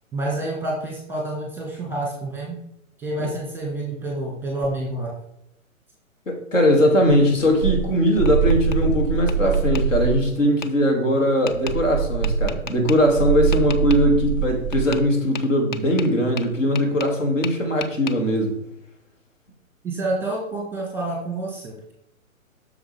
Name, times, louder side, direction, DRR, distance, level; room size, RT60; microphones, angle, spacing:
voice 1, 0.1-2.6 3.0-5.1 19.8-21.9, right 2 dB, 5° right, -2 dB, 1.4 m, -28 dB
voice 2, 6.3-18.5, equal, 65° left, 2 dB, 2.5 m, -20 dB
sound 1, 7.1-10.3 11.5-15.0, right 7 dB, 25° right, 0.3 m, -24 dB
Tap, 7.8-8.8 9.3-9.8 10.6-10.7 11.5-11.8 12.2-13.0 13.5-14.0 14.7-15.1 15.4-17.2 17.4-18.2, left 5 dB, 35° left, 0.5 m, -34 dB
7.8 x 6.4 x 3.5 m, 0.78 s
figure-of-eight pair, 135°, 41 cm